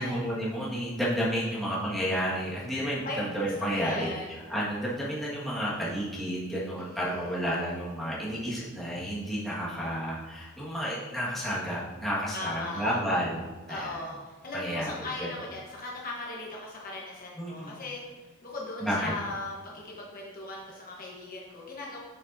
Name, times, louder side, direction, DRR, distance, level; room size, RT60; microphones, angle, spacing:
voice 1, 0.0-4.1 4.5-14.0 14.5-14.9 15.2-15.3 17.4-17.7 18.8-19.1, equal, ahead, -8 dB, 1.7 m, -31 dB
voice 2, 3.6-4.3 6.8-7.4 12.3-13.0 13.7-18.0 18.4-22.0, left 2 dB, 45° left, -3 dB, 1.1 m, -38 dB
7.0 x 6.9 x 2.7 m, 1.3 s
head